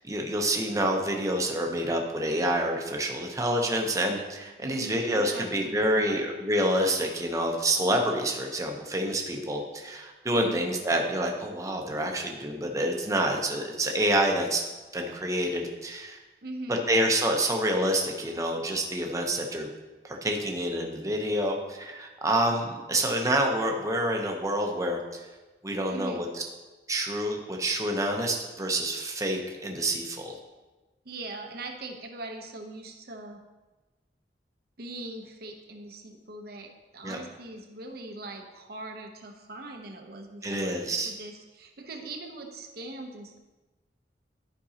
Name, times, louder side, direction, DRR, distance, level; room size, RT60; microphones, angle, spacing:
voice 1, 0.0-14.6 14.9-16.2 16.7-19.7 20.0-25.2 25.6-26.4 26.9-30.4 37.0-37.2 40.4-41.1, right 1 dB, 20° right, 2 dB, 0.8 m, -27 dB
voice 2, 4.6-6.2 10.3-10.7 16.4-16.9 25.9-26.2 31.0-33.4 34.8-40.8 41.0-43.4, right 2 dB, 60° right, 3 dB, 0.9 m, -41 dB
11.5 x 5.3 x 2.9 m, 1.2 s
head